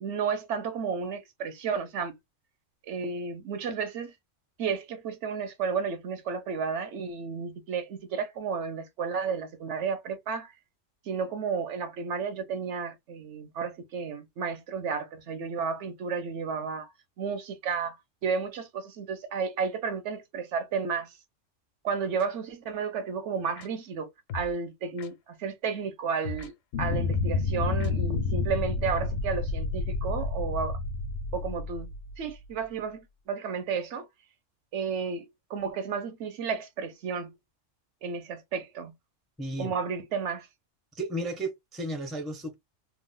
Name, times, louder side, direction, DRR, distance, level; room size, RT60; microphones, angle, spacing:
voice 1, 0.0-2.2 2.8-4.1 4.6-10.5 11.0-16.9 17.2-21.2 21.8-30.8 31.3-31.9 32.2-34.1 34.7-37.4 38.0-38.9 39.6-40.5, right 5 dB, 70° right, 0.9 m, -32 dB
sound 1, 22.2-22.3 23.6-23.7 24.3-24.5 25.0-25.1 26.2-26.5 27.1-27.4 27.8-27.9, left 4 dB, 85° left, 1.0 m, -38 dB
sound 2, 26.7-32.5, left 3 dB, 65° left, 0.6 m, -30 dB
voice 2, 39.4-39.7 40.9-42.5, right 1 dB, ahead, 0.4 m, -33 dB
2.5 x 2.1 x 3.6 m
omnidirectional pair, 1.3 m